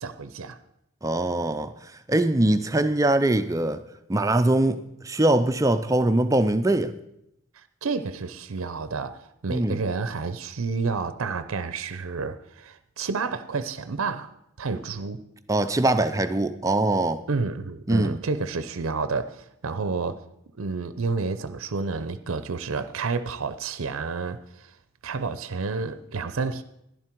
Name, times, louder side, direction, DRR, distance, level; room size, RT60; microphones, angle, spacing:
voice 1, 0.0-0.6 7.5-14.3 14.6-15.2 17.3-20.3 20.6-24.7 25.0-26.6, right 4 dB, 80° right, 0.6 m, -30 dB
voice 2, 1.0-1.7 2.1-3.8 4.1-6.9 9.5-9.8 15.5-17.2 17.9-18.2, right 1 dB, 15° right, 0.4 m, -22 dB
11.5 x 11.0 x 4.5 m
head